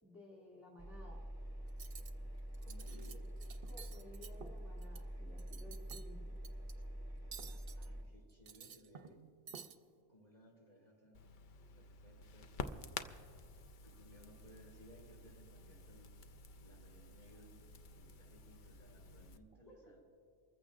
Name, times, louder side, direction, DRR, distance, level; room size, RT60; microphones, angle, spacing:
voice 1, 0.0-1.2 3.6-6.4 19.7-19.9, left 1 dB, ahead, -5 dB, 2.3 m, -57 dB
Engine, 0.8-8.1, right 1 dB, 20° left, 1.1 m, -46 dB
Cutlery silverware, 1.7-2.1 2.5-3.1 3.4-5.0 5.4-6.1 6.4-6.7 7.3-7.9 8.3-9.2 9.5-9.8, right 7 dB, 55° right, 0.8 m, -52 dB
voice 2, 2.6-3.3 7.5-9.4 10.1-11.4 11.7-12.9 13.2-13.4 13.8-16.1 16.6-20.0, equal, 35° left, -3 dB, 3.7 m, -62 dB
Crackle, 11.1-19.4, left 4 dB, 55° left, 0.6 m, -51 dB
28.5 x 14.5 x 2.5 m, 2.3 s
omnidirectional pair, 1.2 m